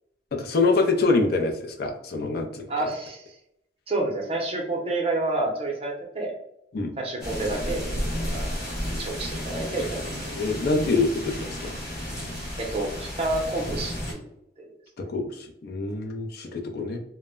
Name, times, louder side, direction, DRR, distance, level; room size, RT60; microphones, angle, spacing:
voice 1, 0.3-2.7 6.7-6.9 10.4-11.7 15.0-17.0, left 3 dB, 60° left, 3 dB, 0.4 m, -25 dB
voice 2, 2.7-3.2 3.9-6.3 7.0-7.8 8.3-8.5 9.0-10.0 12.6-14.3 14.6-14.7, right 2 dB, 30° right, 0 dB, 0.6 m, -29 dB
sound 1, 7.2-14.1, equal, 20° left, 1.2 m, -32 dB
2.0 x 2.0 x 3.5 m, 0.80 s
head